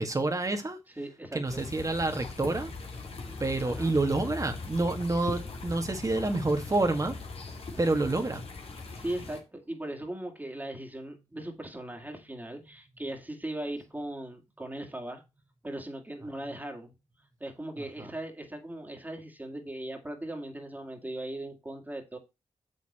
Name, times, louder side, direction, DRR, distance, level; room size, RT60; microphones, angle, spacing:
voice 1, 0.0-0.8 1.3-2.7 3.4-7.2 7.8-8.4 17.8-18.1, right 2 dB, 30° right, 1.7 m, -28 dB
voice 2, 1.0-1.7 3.1-3.9 8.8-15.2 15.6-16.9 17.4-22.2, right 1 dB, 15° right, 2.2 m, -39 dB
sound 1, 1.5-9.4, left 3 dB, 65° left, 2.4 m, -40 dB
7.1 x 6.7 x 4.3 m
cardioid pair, 65°, 11 cm